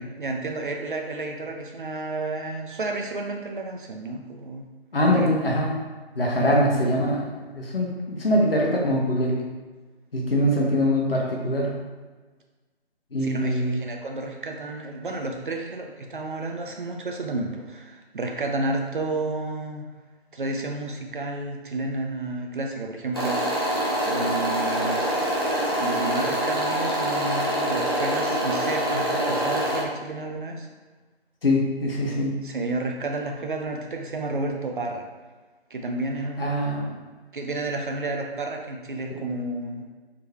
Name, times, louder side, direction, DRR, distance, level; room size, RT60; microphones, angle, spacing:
voice 1, 0.2-4.6 5.1-5.5 6.3-6.6 13.2-19.9 20.3-25.0 25.8-30.7 32.4-35.1 35.7-36.7 37.3-39.9, right 2 dB, 55° right, 2 dB, 0.4 m, -31 dB
voice 2, 4.9-5.8 6.1-9.4 10.1-11.8 13.1-13.8 31.4-32.3 36.4-37.0 39.1-39.2, equal, 65° left, -2 dB, 0.9 m, -23 dB
sound 1, 23.1-29.8, right 1 dB, 25° left, 0.4 m, -25 dB
3.6 x 3.1 x 2.3 m, 1.3 s
figure-of-eight pair, 150°, 32 cm